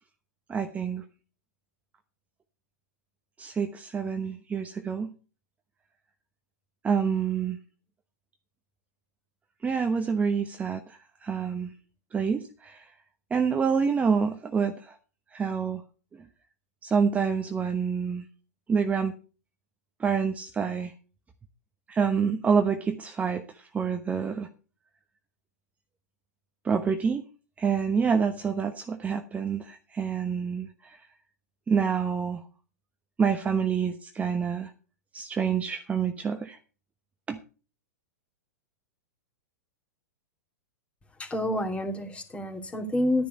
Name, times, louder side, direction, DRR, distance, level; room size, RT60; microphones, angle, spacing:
voice 1, 0.5-1.0 3.4-5.1 6.8-7.6 9.6-11.7 12.1-12.9 13.3-14.9 15.3-15.8 16.8-18.2 18.7-19.1 20.0-20.9 21.9-24.5 26.6-27.2 27.6-31.0 31.7-32.4 33.2-34.7 35.1-36.6 37.3-37.4, right 6 dB, 15° right, 7 dB, 1.0 m, -27 dB
voice 2, 41.2-43.3, left 1 dB, 15° left, 3 dB, 3.0 m, -28 dB
12.5 x 10.0 x 4.1 m, 0.35 s
figure-of-eight pair, 105°, 9 cm